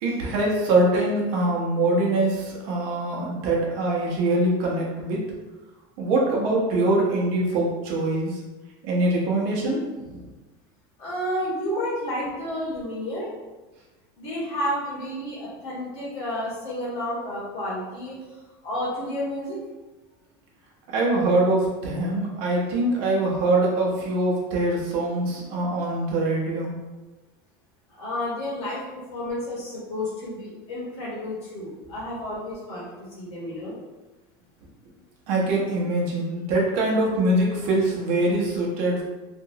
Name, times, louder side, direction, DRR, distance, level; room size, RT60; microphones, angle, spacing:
voice 1, 0.0-5.2 6.0-8.4 8.8-10.2 20.9-26.7 35.3-39.0, right 2 dB, 60° right, -2 dB, 0.8 m, -23 dB
voice 2, 11.0-13.3 14.2-18.4 18.6-19.6 27.9-33.7, left 1 dB, 50° left, -7 dB, 1.5 m, -31 dB
2.9 x 2.5 x 2.7 m, 1.2 s
supercardioid pair, 145°, 13 cm